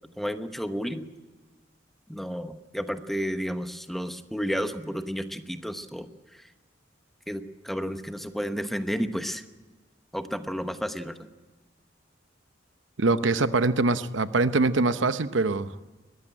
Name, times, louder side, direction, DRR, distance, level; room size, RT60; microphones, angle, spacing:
voice 1, 0.2-1.1 2.1-6.5 7.3-9.4 10.1-11.2, equal, ahead, 8 dB, 1.0 m, -32 dB
voice 2, 13.0-15.7, right 3 dB, 75° right, 12 dB, 0.9 m, -23 dB
21.5 x 15.0 x 9.1 m, 1.3 s
head